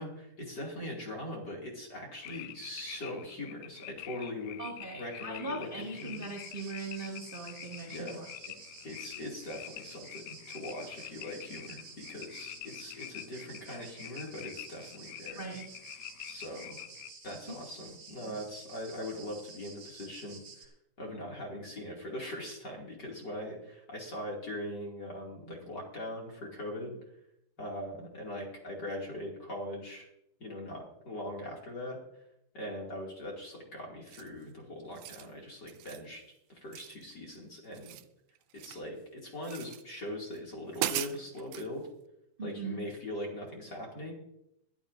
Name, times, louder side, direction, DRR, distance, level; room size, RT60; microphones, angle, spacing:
voice 1, 0.0-4.6 5.0-6.3 7.9-8.1 8.8-15.5 16.2-16.8 17.2-20.7 21.0-26.9 27.6-30.1 30.4-32.0 32.5-36.2 36.5-38.0 38.6-41.9 42.4-44.1, left 1 dB, 35° left, -1 dB, 2.6 m, -41 dB
sound 1, 2.2-17.1, left 15 dB, 85° left, 2.3 m, -47 dB
voice 2, 4.6-8.3 15.3-15.7 17.5-17.6 18.1-18.4 42.4-42.8, right 3 dB, 20° right, -3 dB, 1.4 m, -40 dB
sound 2, 5.6-20.7, right 4 dB, 50° right, 3.3 m, -52 dB
sound 3, 34.1-34.4 34.9-35.3 35.7-36.1 36.7-37.4 37.6-38.9 39.4-39.8 40.3-40.4 40.7-41.7, right 13 dB, 90° right, 2.4 m, -38 dB
22.0 x 12.5 x 2.6 m, 0.81 s
omnidirectional pair, 4.0 m